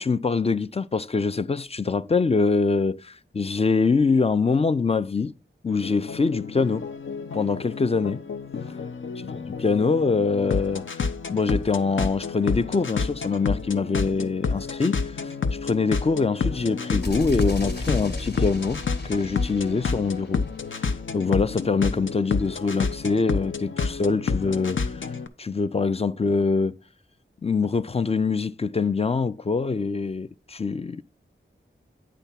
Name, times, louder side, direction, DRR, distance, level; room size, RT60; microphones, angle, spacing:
voice 1, 0.0-5.3 5.6-6.9 7.3-8.2 9.6-11.0 11.3-15.3 15.6-20.4 20.7-25.0 25.4-26.8 27.4-31.0, left 4 dB, 30° left, 0.4 m, -24 dB
sound 1, 5.7-25.3, left 5 dB, 70° left, 0.6 m, -30 dB
sound 2, 17.0-20.9, left 2 dB, 55° left, 1.1 m, -34 dB
9.2 x 3.4 x 5.7 m
wide cardioid pair, 75°, 20 cm